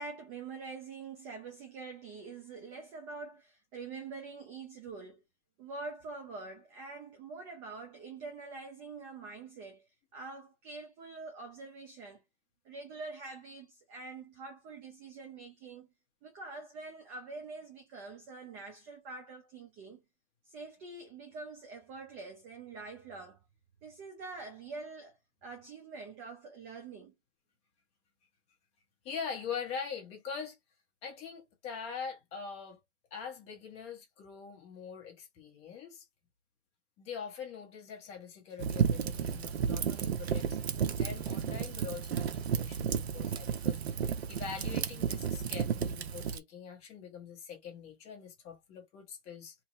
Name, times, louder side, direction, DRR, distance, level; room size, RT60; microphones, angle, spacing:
voice 1, 0.0-5.2 5.6-12.2 12.6-15.9 16.2-20.0 20.4-23.4 23.8-25.2 25.4-27.1, right 3 dB, 20° right, 0.7 m, -45 dB
voice 2, 29.0-30.6 31.0-32.8 33.1-36.0 37.0-40.6 41.0-49.5, left 6 dB, 20° left, 0.9 m, -43 dB
Fire, 38.6-46.4, right 7 dB, 60° right, 0.7 m, -32 dB
3.0 x 2.7 x 4.0 m
hypercardioid pair, 140°, 35 cm